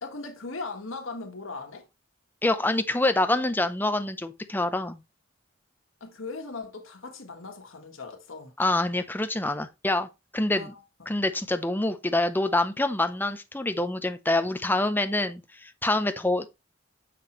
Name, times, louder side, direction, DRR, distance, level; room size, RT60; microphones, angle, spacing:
voice 1, 0.0-1.8 6.0-8.5 10.5-11.1, left 3 dB, 85° left, 1.5 m, -39 dB
voice 2, 2.4-5.0 8.6-10.7 11.1-16.5, left 2 dB, 10° left, 0.6 m, -26 dB
7.2 x 5.9 x 3.1 m
head